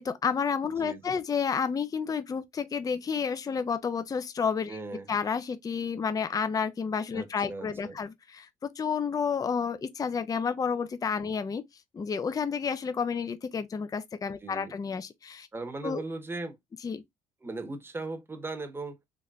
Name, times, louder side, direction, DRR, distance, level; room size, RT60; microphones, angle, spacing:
voice 1, 0.0-4.8 5.1-11.6 11.9-15.5 15.8-16.0 16.8-17.0, left 6 dB, 25° left, 0.5 m, -30 dB
voice 2, 4.7-5.1 7.1-8.0 14.4-14.7 15.5-16.6 17.4-19.0, right 3 dB, 15° right, 1.0 m, -38 dB
4.0 x 3.2 x 2.3 m
cardioid pair, 105°, 14 cm